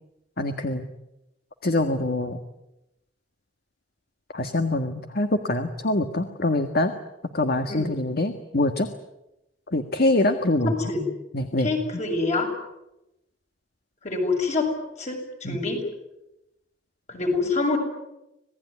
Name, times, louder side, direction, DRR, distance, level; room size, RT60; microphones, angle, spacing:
voice 1, 0.4-0.9 1.6-2.4 4.3-6.9 7.3-8.9 9.7-10.9 11.3-11.7 15.4-15.6, left 2 dB, 55° left, 7 dB, 1.7 m, -24 dB
voice 2, 10.6-11.0 11.6-12.5 14.0-14.7 15.0-15.8 17.1-17.8, left 3 dB, 40° left, 3 dB, 7.1 m, -26 dB
27.0 x 19.0 x 9.7 m, 0.90 s
head